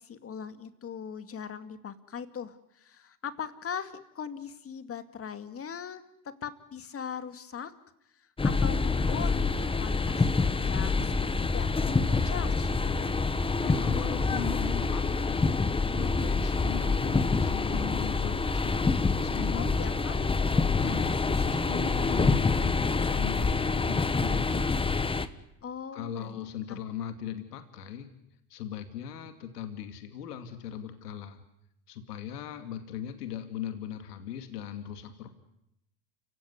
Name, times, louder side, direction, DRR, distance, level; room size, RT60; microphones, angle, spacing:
voice 1, 0.0-6.0 6.4-7.7 8.2-13.1 19.5-20.3 25.6-26.4 26.7-26.8, left 7 dB, 30° left, 10 dB, 2.3 m, -40 dB
sound 1, 8.4-25.3, left 4 dB, 10° left, 1.3 m, -26 dB
voice 2, 13.6-15.5 15.9-18.9 19.2-20.1 20.8-24.9 25.9-28.1 28.5-31.4 31.9-35.3, left 9 dB, 85° left, 7 dB, 2.6 m, -39 dB
29.5 x 17.0 x 9.7 m, 0.81 s
hypercardioid pair, 95°, 46 cm